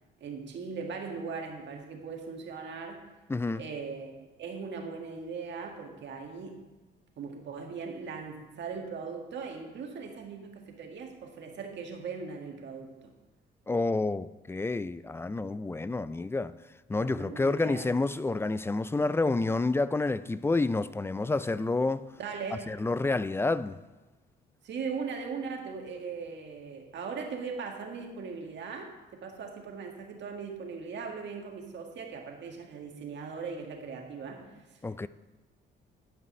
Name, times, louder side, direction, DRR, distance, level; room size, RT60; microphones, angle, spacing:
voice 1, 0.2-3.0 3.6-6.7 7.2-13.1 16.9-17.9 22.2-22.7 24.6-34.5, right 5 dB, 65° right, 1.7 m, -39 dB
voice 2, 3.3-3.6 13.7-16.5 16.9-22.0 22.7-23.8 34.8-35.1, left 3 dB, 10° left, 0.3 m, -29 dB
11.0 x 5.5 x 5.3 m
cardioid pair, 90°, 20 cm